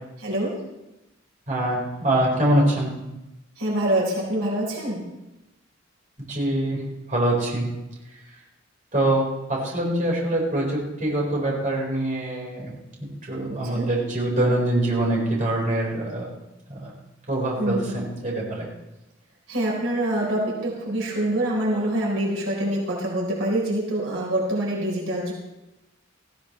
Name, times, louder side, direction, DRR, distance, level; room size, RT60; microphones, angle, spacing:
voice 1, 0.2-0.5 3.6-5.0 13.6-13.9 17.6-18.0 19.5-25.3, right 1 dB, 70° right, -3 dB, 4.0 m, -25 dB
voice 2, 1.5-2.9 6.3-6.8 7.1-7.7 8.9-12.7 13.0-16.3 16.7-16.9 17.3-18.7, right 1 dB, 40° right, -3 dB, 4.7 m, -24 dB
18.5 x 16.0 x 3.2 m, 0.96 s
head